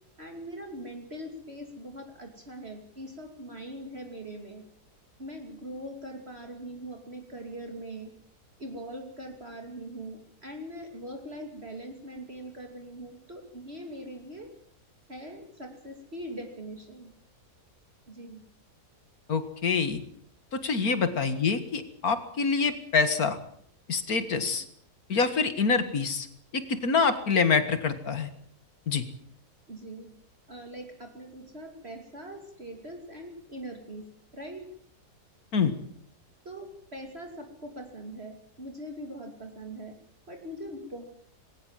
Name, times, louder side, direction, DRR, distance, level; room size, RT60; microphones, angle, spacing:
voice 1, 0.2-4.6 5.2-8.1 8.6-14.5 15.1-17.1 18.1-18.4 20.8-21.0 24.3-24.5 29.7-30.1 30.5-34.0 34.3-34.6 36.4-40.0 40.3-41.0, right 1 dB, 40° right, 3 dB, 2.9 m, -42 dB
voice 2, 19.3-20.0 20.5-23.4 23.9-24.7 25.1-26.3 26.5-28.3 28.9-29.0 35.5-35.8, left 5 dB, 65° left, 10 dB, 2.2 m, -26 dB
20.5 x 18.0 x 7.5 m, 0.64 s
omnidirectional pair, 1.7 m